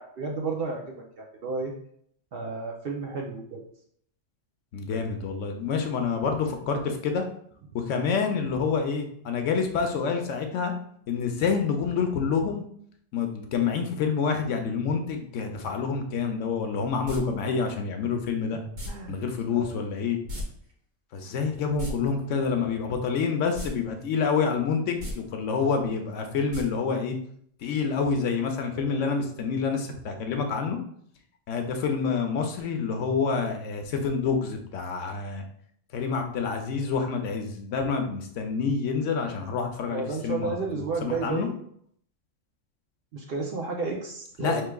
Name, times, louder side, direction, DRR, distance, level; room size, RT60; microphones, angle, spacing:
voice 1, 0.0-1.7 2.3-3.6 18.9-19.2 19.5-19.7 28.7-29.0 39.9-41.5 43.1-44.6, right 4 dB, 60° right, 1 dB, 0.7 m, -32 dB
voice 2, 4.7-7.2 7.7-10.7 11.1-12.6 13.1-18.6 19.1-20.2 21.1-27.2 27.6-30.8 31.5-35.4 35.9-41.5 44.4-44.6, left 5 dB, 75° left, 5 dB, 0.9 m, -27 dB
sound 1, 17.0-17.2 18.7-18.9 20.3-20.4 20.7-20.8 21.6-21.9 23.5-23.7 24.1-24.2 24.9-25.1 26.5-26.6 26.9-27.0, left 1 dB, 85° right, 1.5 m, -34 dB
4.6 x 3.1 x 2.2 m, 0.65 s
omnidirectional pair, 1.3 m